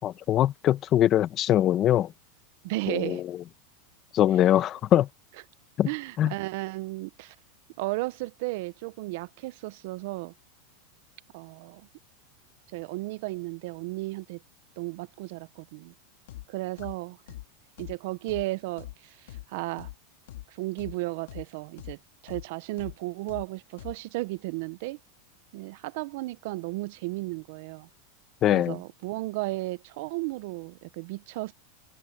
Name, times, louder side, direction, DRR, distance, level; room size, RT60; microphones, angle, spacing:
voice 1, 0.0-2.1 2.9-3.2 4.1-5.1 5.8-5.9 6.2-6.3 28.4-28.8, left 12 dB, 35° left, 1.2 m, -22 dB
voice 2, 2.6-3.2 5.9-7.3 7.8-10.3 11.3-11.9 12.7-14.4 14.8-15.9 16.5-17.2 17.8-19.9 20.5-22.0 22.2-25.0 25.5-27.9 28.5-31.5, right 21 dB, 60° right, 0.9 m, -34 dB
sound 1, 16.3-16.4 16.8-16.9 17.3-17.4 17.8-17.9 18.3-18.4 18.8-18.9 19.3-19.4 19.8-19.9 20.3-20.4 20.8-20.9 21.3-21.4 21.8-21.9 22.3-22.4 22.8-22.9 23.3-23.4 23.8-23.9, left 15 dB, 75° left, 2.0 m, -41 dB
supercardioid pair, 135°, 0 cm